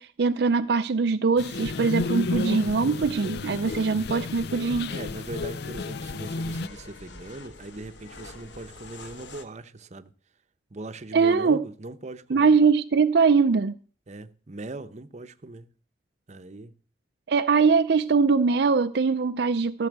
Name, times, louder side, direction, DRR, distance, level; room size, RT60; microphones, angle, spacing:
voice 1, 0.0-5.0 11.1-11.6 12.3-13.8 17.3-19.9, right 5 dB, 65° right, 0.5 m, -22 dB
sound 1, 1.4-6.7, left 3 dB, 60° left, 0.5 m, -32 dB
sound 2, 4.0-9.4, left 3 dB, 80° left, 1.3 m, -47 dB
voice 2, 4.9-10.1 10.7-12.5 14.1-15.7 16.3-16.7, right 2 dB, 40° right, 0.8 m, -40 dB
14.5 x 5.6 x 8.0 m
head